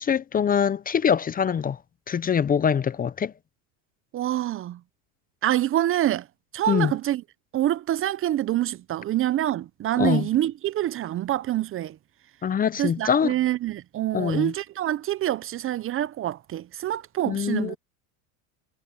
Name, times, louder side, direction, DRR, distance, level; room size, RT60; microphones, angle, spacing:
voice 1, 0.0-1.8 2.1-3.3 6.7-6.9 10.0-10.3 12.4-13.3 14.1-14.5 17.3-17.8, left 7 dB, 25° left, 0.7 m, -23 dB
voice 2, 4.1-4.8 5.4-6.3 6.5-7.2 7.5-12.0 12.8-17.8, right 13 dB, 35° right, 0.7 m, -26 dB
supercardioid pair, 115°, 37 cm